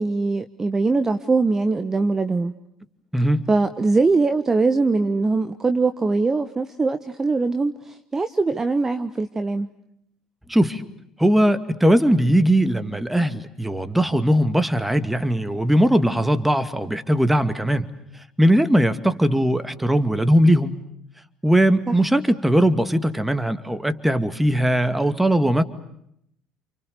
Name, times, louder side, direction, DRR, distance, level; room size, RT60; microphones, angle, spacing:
voice 1, 0.0-2.5 3.5-9.7 21.9-22.0, right 3 dB, 20° right, 10 dB, 1.4 m, -22 dB
voice 2, 3.1-3.4 10.5-10.8 11.2-17.8 18.4-20.8 21.4-25.6, equal, 5° right, 11 dB, 2.4 m, -19 dB
29.5 x 29.0 x 6.9 m, 0.75 s
figure-of-eight pair, 60°, 2 cm